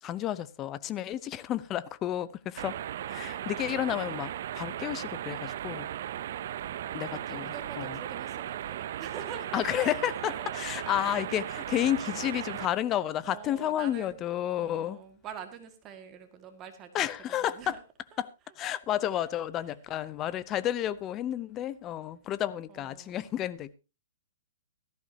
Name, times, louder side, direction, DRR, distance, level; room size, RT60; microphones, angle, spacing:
voice 1, 0.0-2.8 3.1-5.9 6.9-8.0 9.5-15.0 16.9-17.8 18.2-18.3 18.6-23.7, left 11 dB, 20° left, 0.7 m, -31 dB
sound 1, 2.6-12.7, right 11 dB, 50° right, 0.7 m, -37 dB
voice 2, 3.0-4.0 6.6-10.9 11.3-11.5 13.2-14.2 14.5-17.8 18.1-18.2 22.7-23.4, right 7 dB, 20° right, 2.0 m, -46 dB
17.0 x 14.0 x 2.8 m
hypercardioid pair, 160°, 0 cm